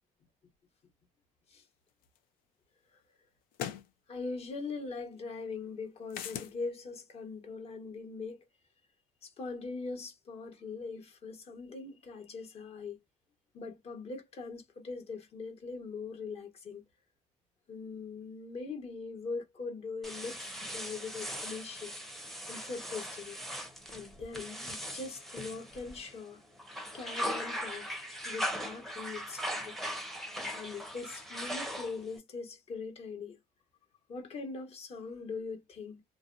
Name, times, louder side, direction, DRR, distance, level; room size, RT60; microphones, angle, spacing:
sound 1, 2.1-2.2 3.5-3.9 6.1-6.5, left 10 dB, 80° left, 0.5 m, -38 dB
voice 1, 4.1-8.4 9.2-13.0 13.5-16.8 17.7-21.9 22.5-23.4 23.9-26.4 26.9-28.0 28.2-29.7 30.5-33.4 34.1-36.0, left 4 dB, 45° left, 1.1 m, -41 dB
sound 2, 20.0-26.2 26.6-32.2, equal, ahead, 0.7 m, -39 dB
2.5 x 2.2 x 2.5 m
cardioid pair, 110°, 15 cm